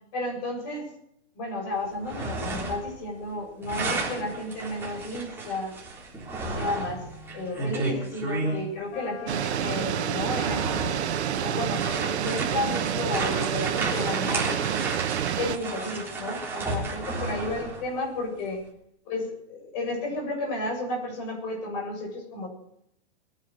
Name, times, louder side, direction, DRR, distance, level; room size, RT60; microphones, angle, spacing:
voice 1, 0.1-0.9 1.3-5.8 6.5-7.1 7.3-10.7 11.4-14.8 15.4-18.6 19.1-22.5, left 2 dB, 40° left, 0 dB, 7.7 m, -32 dB
sound 1, 1.9-3.0 3.2-8.6 9.5-9.6 10.1-17.9, right 3 dB, 5° right, 3.5 m, -33 dB
Wind instrument woodwind instrument, 7.0-8.1 8.4-8.6 8.9-14.2, left 2 dB, 70° left, 6.0 m, -42 dB
sound 2, 9.3-15.6, right 10 dB, 70° right, 1.3 m, -28 dB
22.0 x 10.0 x 6.5 m, 0.73 s
hypercardioid pair, 165°, 34 cm